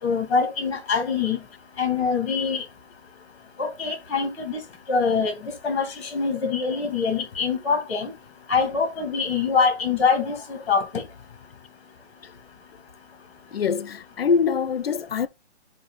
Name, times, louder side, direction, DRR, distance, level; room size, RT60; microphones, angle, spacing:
voice 1, 0.0-1.4 1.8-2.6 3.6-4.6 4.9-8.1 8.5-11.0, left 5 dB, 25° left, 2.0 m, -24 dB
voice 2, 13.5-15.3, left 6 dB, 55° left, 0.5 m, -24 dB
7.5 x 2.7 x 5.5 m
hypercardioid pair, 170°, 35 cm